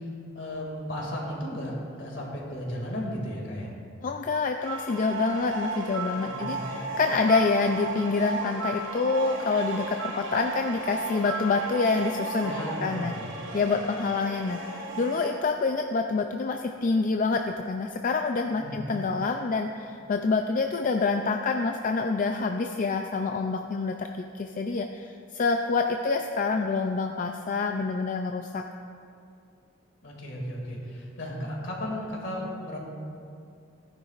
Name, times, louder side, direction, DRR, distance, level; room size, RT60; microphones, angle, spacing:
voice 1, 0.3-3.7 6.2-6.6 12.4-13.3 18.5-18.8 30.0-32.8, equal, 70° left, -2 dB, 2.4 m, -35 dB
voice 2, 4.0-12.5 12.8-13.1 13.5-14.6 15.0-28.6, left 4 dB, 45° left, 4 dB, 0.4 m, -27 dB
sound 1, 4.6-15.3, right 3 dB, 85° right, 1.6 m, -35 dB
16.0 x 10.5 x 2.5 m, 2.5 s
head